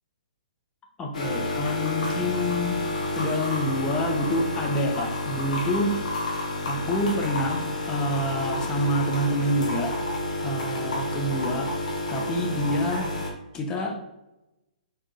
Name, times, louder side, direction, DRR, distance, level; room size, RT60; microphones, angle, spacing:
voice 1, 1.0-2.8 3.1-5.9 6.7-9.9 10.4-11.7 12.1-13.1 13.5-14.1, equal, 20° left, 1 dB, 0.7 m, -27 dB
sound 1, 1.1-13.3, left 1 dB, 60° left, 1.0 m, -30 dB
4.4 x 3.5 x 2.5 m, 0.94 s
figure-of-eight pair, 120°, 5 cm